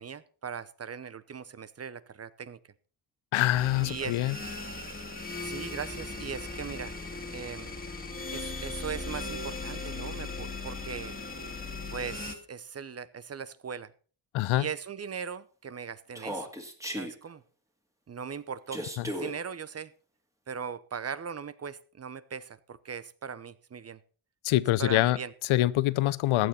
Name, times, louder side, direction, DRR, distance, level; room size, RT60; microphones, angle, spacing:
voice 1, 0.0-2.6 3.8-4.2 5.4-6.9 7.3-7.7 8.3-11.2 11.9-13.9 14.5-16.5 16.9-17.4 18.1-19.9 20.5-24.0 24.8-25.3, right 6 dB, 30° right, 17 dB, 0.8 m, -39 dB
voice 2, 3.3-4.4 14.3-14.7 24.4-25.2 25.5-26.5, left 15 dB, 75° left, 19 dB, 0.7 m, -25 dB
sound 1, 3.5-12.4, left 3 dB, 20° left, 2.1 m, -38 dB
Human voice, 16.1-17.1 18.7-19.3, equal, 5° right, 2.4 m, -35 dB
15.5 x 9.4 x 4.3 m, 0.40 s
cardioid pair, 110°, 48 cm